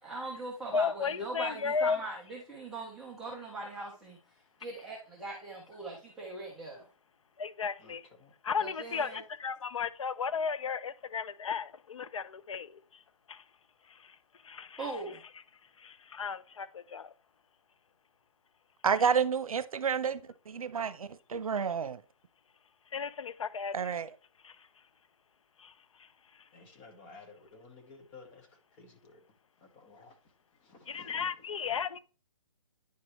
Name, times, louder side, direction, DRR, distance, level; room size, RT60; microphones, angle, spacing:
voice 1, 0.0-4.2 4.6-6.9 8.6-9.2 14.8-15.2, right 2 dB, ahead, 0.4 m, -40 dB
voice 2, 0.7-2.0 7.4-8.0 8.4-13.0 13.3-13.4 13.9-14.2 14.4-14.9 15.8-17.1 22.9-23.9 24.4-24.7 25.6-25.7 26.0-26.1 26.4-26.5 30.9-32.0, left 6 dB, 65° left, 0.5 m, -35 dB
voice 3, 7.8-8.3 26.5-28.5 28.8-29.2 29.6-30.2 30.6-31.3 31.7-31.8, left 3 dB, 20° left, 1.0 m, -54 dB
voice 4, 18.8-22.0 23.7-24.1, right 6 dB, 85° right, 0.7 m, -30 dB
9.5 x 4.7 x 3.1 m
hypercardioid pair, 165°, 18 cm